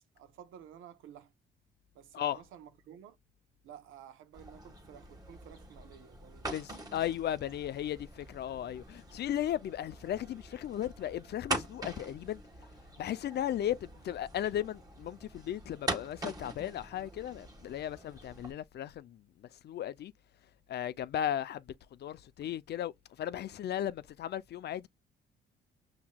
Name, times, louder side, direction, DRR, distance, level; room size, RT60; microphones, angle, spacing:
voice 1, 0.0-1.3 1.9-3.2 3.6-6.5, right 9 dB, 85° right, 0.9 m, -53 dB
sound 1, 4.3-18.5, right 2 dB, 20° right, 1.5 m, -43 dB
voice 2, 6.5-12.4 13.0-20.1 20.7-21.6 22.0-22.9 23.2-24.9, left 11 dB, 60° left, 0.5 m, -36 dB
5.6 x 2.9 x 2.2 m
cardioid pair, 90°, 20 cm